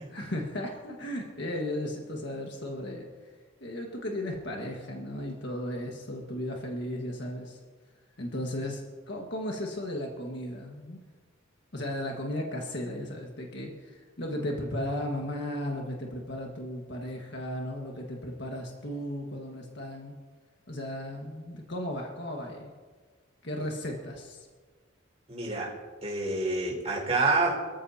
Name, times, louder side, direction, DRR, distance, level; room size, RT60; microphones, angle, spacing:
voice 1, 0.0-3.1 3.6-7.6 8.2-11.0 11.7-20.1 20.7-22.8 23.4-24.5, left 1 dB, 55° left, 0 dB, 1.7 m, -35 dB
voice 2, 25.3-25.7 26.0-27.6, right 3 dB, 30° right, -4 dB, 5.2 m, -27 dB
24.0 x 14.0 x 2.9 m, 1.5 s
head